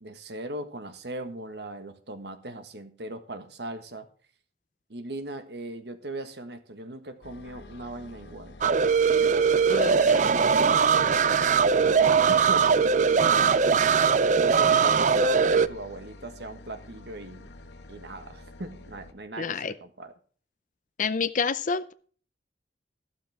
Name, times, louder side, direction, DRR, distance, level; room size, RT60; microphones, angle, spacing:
voice 1, 0.0-4.1 4.9-8.6 9.2-9.5 9.8-11.0 11.8-13.6 14.4-17.5 17.9-20.1, right 1 dB, 65° right, 1.5 m, -39 dB
sound 1, 7.2-19.1, left 1 dB, 75° left, 1.4 m, -48 dB
sound 2, 8.6-15.7, right 6 dB, 45° right, 0.5 m, -21 dB
voice 2, 9.7-10.3 19.4-19.7 21.0-21.9, left 5 dB, 45° left, 0.6 m, -29 dB
12.5 x 12.0 x 3.6 m
head